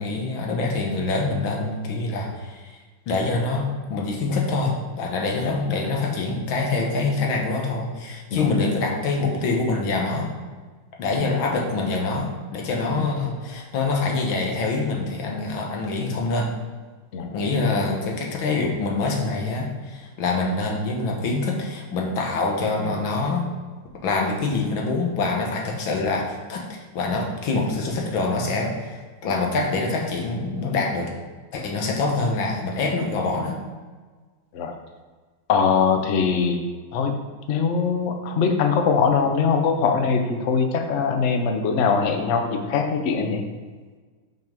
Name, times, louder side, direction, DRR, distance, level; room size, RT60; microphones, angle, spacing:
voice 1, 0.0-2.8 3.1-10.3 11.0-16.5 17.3-23.5 24.0-31.1 31.5-33.6, left 3 dB, 70° left, 0 dB, 1.9 m, -25 dB
voice 2, 35.5-36.6 36.9-37.1 37.5-43.4, left 5 dB, 85° left, 5 dB, 0.6 m, -22 dB
6.0 x 5.3 x 5.2 m, 1.4 s
omnidirectional pair, 2.3 m